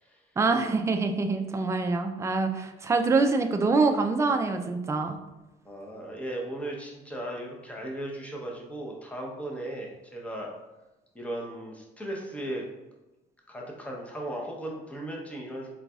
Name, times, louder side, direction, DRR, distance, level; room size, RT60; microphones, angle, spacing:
voice 1, 0.4-5.2, right 3 dB, 15° right, 6 dB, 0.4 m, -25 dB
voice 2, 5.6-10.5 11.1-12.6 13.5-15.7, right 1 dB, 10° left, -1 dB, 0.8 m, -36 dB
3.9 x 3.9 x 2.3 m, 1.0 s
cardioid pair, 110°, 17 cm